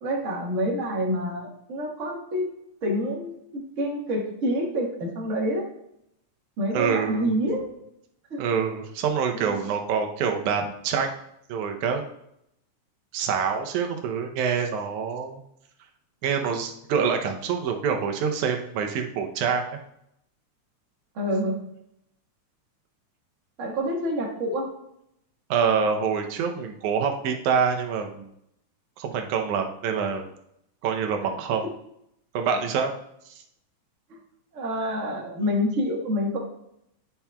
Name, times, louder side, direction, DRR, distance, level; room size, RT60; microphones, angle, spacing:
voice 1, 0.0-2.5 2.8-5.6 6.6-7.7 8.3-8.4 9.4-9.6 21.1-21.6 23.6-24.7 34.5-36.4, equal, 40° right, -2 dB, 1.1 m, -27 dB
voice 2, 6.7-7.3 8.4-11.1 11.5-12.1 13.1-15.4 16.2-19.6 25.5-28.3 29.0-30.3 30.8-31.7 32.3-32.9, right 6 dB, 90° right, 4 dB, 2.2 m, -26 dB
9.8 x 5.7 x 2.3 m, 0.77 s
omnidirectional pair, 3.3 m